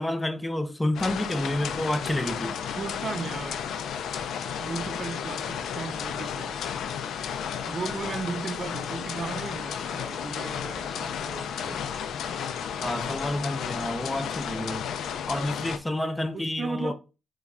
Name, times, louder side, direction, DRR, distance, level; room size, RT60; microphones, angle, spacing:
voice 1, 0.0-2.6 12.8-14.8 15.3-16.9, left 1 dB, 10° left, 0.5 m, -29 dB
sound 1, 0.9-15.8, left 8 dB, 75° left, 0.3 m, -33 dB
voice 2, 2.8-3.6 4.6-6.6 7.2-12.0 16.3-16.9, right 4 dB, 40° right, 0.4 m, -36 dB
3.1 x 2.2 x 3.6 m
cardioid pair, 90°, 0 cm